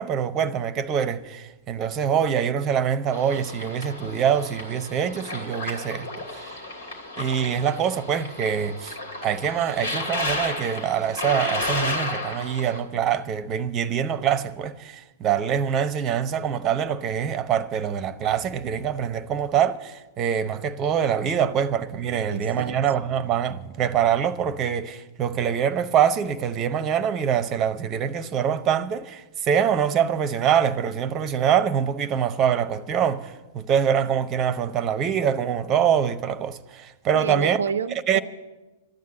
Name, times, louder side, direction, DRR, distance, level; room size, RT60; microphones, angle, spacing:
voice 1, 0.0-6.5 7.2-8.9 9.2-37.6 38.1-38.2, right 8 dB, 30° right, 0.8 m, -24 dB
sound 1, 3.1-12.8, left 2 dB, 65° left, 2.8 m, -32 dB
voice 2, 22.3-22.7 37.1-38.2, right 6 dB, 70° right, 0.4 m, -29 dB
13.0 x 9.4 x 8.4 m
figure-of-eight pair, 105°, 0 cm